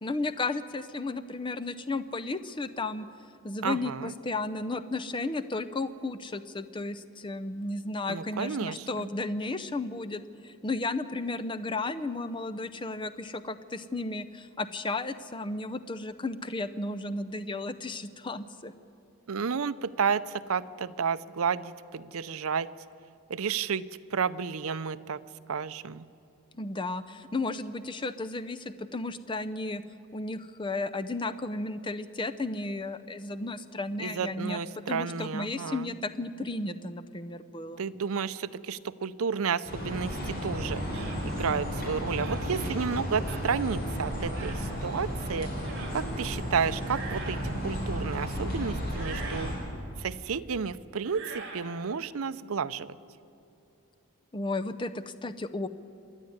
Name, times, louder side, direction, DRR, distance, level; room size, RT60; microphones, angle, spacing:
voice 1, 0.0-3.1 3.4-18.7 26.6-29.8 30.1-34.6 34.9-37.8 54.3-55.7, left 2 dB, 20° left, 12 dB, 0.6 m, -34 dB
voice 2, 3.6-4.1 8.1-9.1 19.3-22.7 23.3-23.9 24.1-25.2 25.5-26.1 34.0-35.9 37.8-49.5 50.0-53.0, right 6 dB, 70° right, 13 dB, 0.6 m, -32 dB
sound 1, 39.7-49.5, equal, 45° left, 5.1 m, -33 dB
sound 2, 40.9-41.2 42.2-42.5 43.2-43.5 44.3-44.6 45.6-46.0 46.8-47.5 48.9-49.6 51.0-51.7, right 4 dB, 50° right, 3.1 m, -42 dB
27.0 x 11.0 x 9.4 m, 2.6 s
head